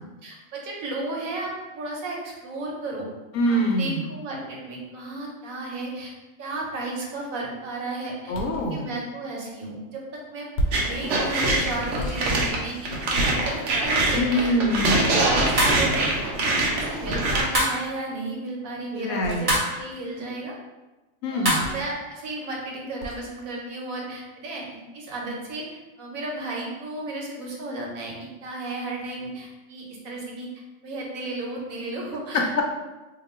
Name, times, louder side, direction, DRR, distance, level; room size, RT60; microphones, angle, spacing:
voice 1, 0.2-3.1 3.5-6.1 6.4-8.3 8.7-10.5 10.8-16.3 16.7-20.5 21.3-25.6 26.0-30.5 30.8-32.5, right 2 dB, 90° right, -2 dB, 1.2 m, -33 dB
voice 2, 3.3-4.1 8.3-8.9 14.1-15.2 18.9-19.5 21.2-21.6 32.3-32.6, equal, 85° left, 1 dB, 1.0 m, -24 dB
sound 1, 8.3-8.7 10.5-11.0 12.0-13.1 14.8-15.4 17.2-17.5 19.2-19.6 21.6-22.0 23.0-23.2, right 1 dB, 60° left, 0.8 m, -33 dB
sound 2, 10.7-17.4, right 2 dB, 70° right, 1.0 m, -24 dB
sound 3, 15.6-15.9 17.5-17.8 19.5-19.8 21.4-21.7, equal, 35° right, 0.7 m, -23 dB
2.9 x 2.2 x 4.2 m, 1.1 s
omnidirectional pair, 1.4 m